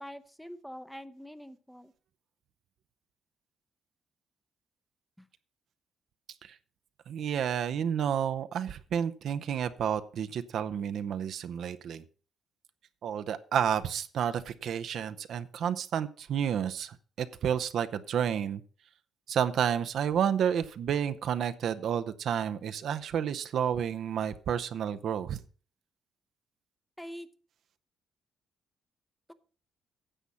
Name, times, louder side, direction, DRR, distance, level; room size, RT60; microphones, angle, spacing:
voice 1, 0.0-1.9 27.0-27.3 29.3-29.4, equal, ahead, 12 dB, 0.8 m, -44 dB
voice 2, 7.1-12.0 13.0-18.6 19.3-25.4, right 8 dB, 70° right, 10 dB, 0.7 m, -30 dB
10.0 x 7.2 x 5.6 m, 0.40 s
cardioid pair, 90°, 0 cm